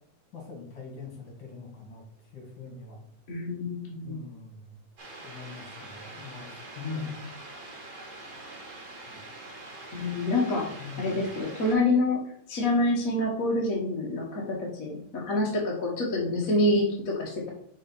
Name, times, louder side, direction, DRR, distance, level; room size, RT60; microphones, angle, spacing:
voice 1, 0.3-2.0 2.3-3.0 4.0-4.8 5.2-7.1 9.1-9.2 10.8-11.3, left 4 dB, 60° left, 0 dB, 2.6 m, -43 dB
voice 2, 3.3-4.2 6.8-7.2 9.9-10.7 11.0-12.2 12.5-17.5, left 2 dB, 45° left, -2 dB, 1.5 m, -27 dB
sound 1, 5.0-11.7, right 2 dB, 50° right, 2.2 m, -44 dB
5.6 x 4.3 x 5.3 m, 0.63 s
omnidirectional pair, 2.4 m